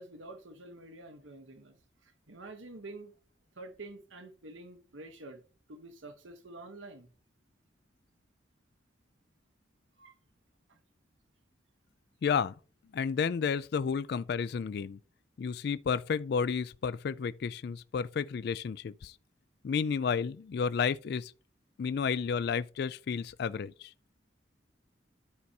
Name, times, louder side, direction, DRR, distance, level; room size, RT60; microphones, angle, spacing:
voice 1, 0.0-1.8 2.0-3.1 3.6-5.4 5.7-7.1 10.0-10.1 10.7-10.8, right 2 dB, 80° right, 1.0 m, -48 dB
voice 2, 12.2-12.5 12.9-15.0 15.4-19.1 19.6-21.3 21.8-23.9, left 6 dB, 55° left, 0.3 m, -31 dB
13.0 x 4.7 x 2.8 m
head